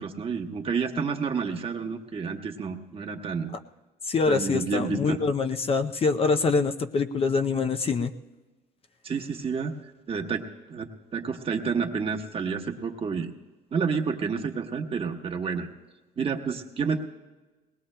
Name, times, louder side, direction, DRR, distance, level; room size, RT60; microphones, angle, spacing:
voice 1, 0.0-3.6 4.3-5.2 9.0-9.8 10.1-13.3 13.7-15.7 16.2-17.0, right 5 dB, 35° right, 3 dB, 1.2 m, -30 dB
voice 2, 4.1-8.1, left 4 dB, 35° left, 7 dB, 0.5 m, -25 dB
21.5 x 19.0 x 2.2 m, 1.2 s
cardioid pair, 110°, 17 cm